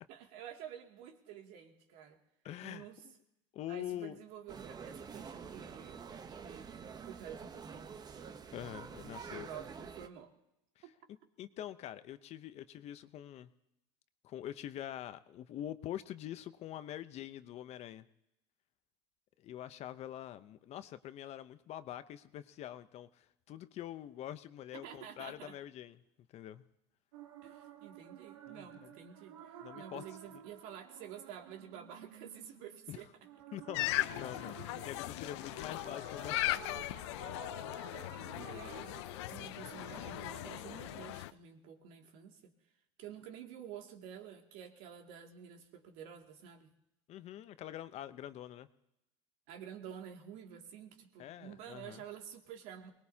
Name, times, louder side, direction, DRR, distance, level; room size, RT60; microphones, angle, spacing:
voice 1, 0.1-2.2 2.6-3.0 3.7-6.0 6.3-8.3 9.1-10.3 10.8-10.9 24.8-25.6 27.4-33.1 37.9-38.9 39.3-42.5 43.0-46.7 49.5-52.9, right 9 dB, 70° right, 2 dB, 2.6 m, -50 dB
voice 2, 2.4-2.9 3.5-4.2 8.5-9.5 11.4-13.5 14.2-18.1 19.4-26.0 26.3-26.6 28.5-28.9 29.6-30.0 30.3-30.4 32.9-33.0 33.5-33.8 34.1-36.7 47.1-48.7 51.2-52.0, left 12 dB, 50° left, 12 dB, 0.8 m, -45 dB
sound 1, 4.5-10.1, right 6 dB, 25° right, 1.0 m, -48 dB
sound 2, 27.1-41.0, right 9 dB, 90° right, 1.4 m, -53 dB
sound 3, 33.7-41.3, left 17 dB, 80° left, 0.5 m, -38 dB
23.5 x 20.0 x 2.9 m, 0.87 s
supercardioid pair, 105°, 15 cm